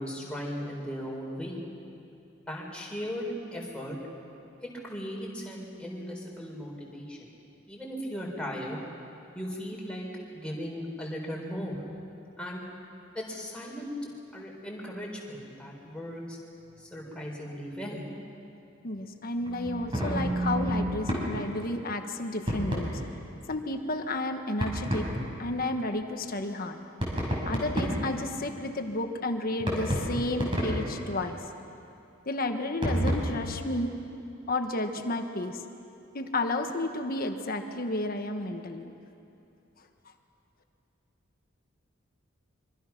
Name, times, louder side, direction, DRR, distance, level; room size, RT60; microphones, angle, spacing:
voice 1, 0.0-1.6 2.5-4.0 4.6-7.3 7.6-8.8 9.3-10.1 10.3-11.8 12.4-12.6 13.1-16.4 16.8-18.0, equal, 5° left, -2 dB, 4.4 m, -37 dB
voice 2, 18.8-23.0 23.5-25.1 25.4-26.8 27.4-31.4 32.2-33.9 34.5-35.6 36.1-38.9, left 2 dB, 45° left, 5 dB, 1.4 m, -32 dB
sound 1, 19.4-21.3 22.5-22.9 24.6-25.1 27.0-28.1 29.6-30.9 32.8-33.1, equal, 25° right, 5.7 m, -29 dB
25.5 x 24.0 x 6.0 m, 2.7 s
head